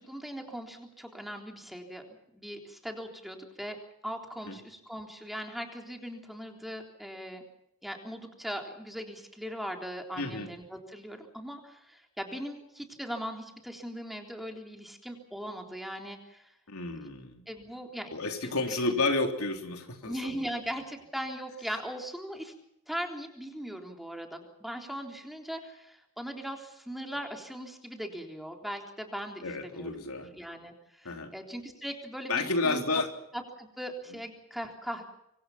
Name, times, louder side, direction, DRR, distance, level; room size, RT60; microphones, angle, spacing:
voice 1, 0.0-3.8 4.0-7.4 7.8-16.5 17.0-17.1 17.5-18.1 18.4-18.9 20.0-22.5 22.9-32.8 33.3-35.0, equal, ahead, 2 dB, 3.6 m, -39 dB
voice 2, 10.2-10.5 16.7-17.4 18.1-20.4 29.4-30.3 31.1-31.3 32.3-33.1, left 3 dB, 85° left, 4 dB, 3.6 m, -31 dB
25.5 x 25.0 x 5.9 m, 0.80 s
head